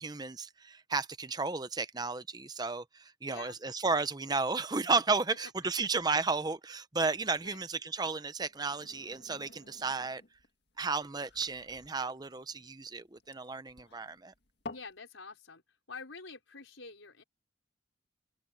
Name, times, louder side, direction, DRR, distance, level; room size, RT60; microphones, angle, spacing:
voice 1, 0.0-10.2 10.8-14.3, right 4 dB, 20° right, 0.7 m, -33 dB
voice 2, 3.2-3.6 5.3-5.4 5.8-5.9 7.4-7.6 14.7-15.6 15.9-17.2, left 4 dB, 85° left, 5.2 m, -47 dB
sound 1, 8.5-15.0, left 2 dB, 55° left, 2.2 m, -52 dB
head